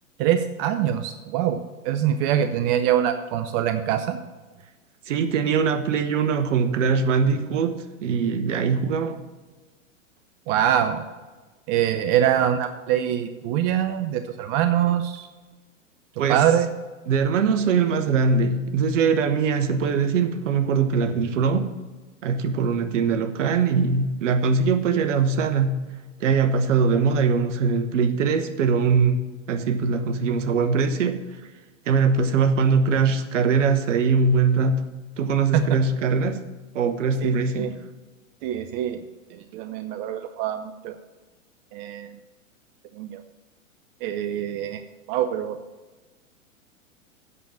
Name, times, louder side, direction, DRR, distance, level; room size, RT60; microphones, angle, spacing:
voice 1, 0.2-4.2 10.5-11.0 11.7-15.3 16.3-16.7 35.5-35.8 37.2-37.7 38.4-39.0 39.3-41.0 41.7-42.1 43.0-43.2 44.0-44.8 45.1-45.6, right 10 dB, 45° right, 9 dB, 0.7 m, -24 dB
voice 2, 5.1-9.2 16.2-16.4 17.1-21.7 22.2-25.9 26.2-31.2 31.9-34.9 35.2-36.4 36.7-37.8, right 5 dB, 65° right, 8 dB, 1.2 m, -22 dB
8.4 x 7.1 x 7.5 m, 1.2 s
hypercardioid pair, 105°, 39 cm